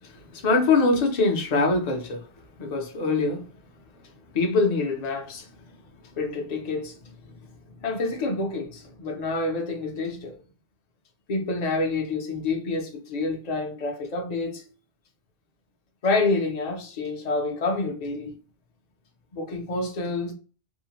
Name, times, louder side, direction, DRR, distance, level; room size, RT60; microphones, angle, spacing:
voice 1, 0.0-2.3 2.6-3.4 4.3-5.5 6.1-7.1 7.8-10.3 11.3-14.6 16.0-18.4 19.3-20.3, left 3 dB, 45° left, 0.6 m, -26 dB
2.7 x 2.1 x 2.8 m
omnidirectional pair, 1.2 m